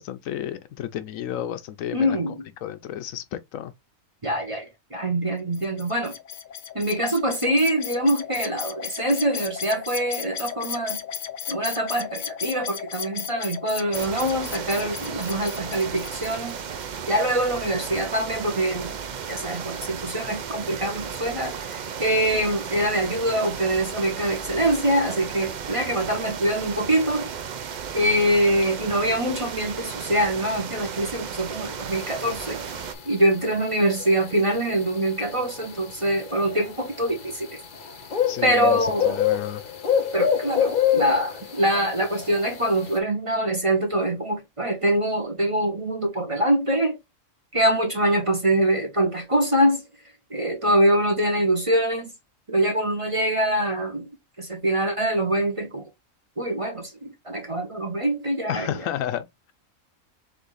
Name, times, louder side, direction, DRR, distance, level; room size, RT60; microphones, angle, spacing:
voice 1, 0.0-2.2 2.6-3.7 38.3-39.6 58.5-59.5, left 11 dB, 75° left, 1.0 m, -32 dB
voice 2, 1.9-2.4 4.2-6.2 6.7-11.0 11.5-16.6 17.1-18.9 19.3-27.3 27.9-32.6 33.1-37.6 38.4-39.2 40.1-47.0 47.5-49.8 50.3-52.1 52.5-54.1 54.4-55.9 56.4-58.7, right 1 dB, 25° right, 0.9 m, -24 dB
sound 1, 5.5-16.6, left 9 dB, 60° left, 0.5 m, -35 dB
sound 2, 13.9-32.9, right 7 dB, 60° right, 0.4 m, -34 dB
sound 3, 31.9-43.0, left 8 dB, 45° left, 0.8 m, -27 dB
3.6 x 3.6 x 3.9 m
omnidirectional pair, 1.4 m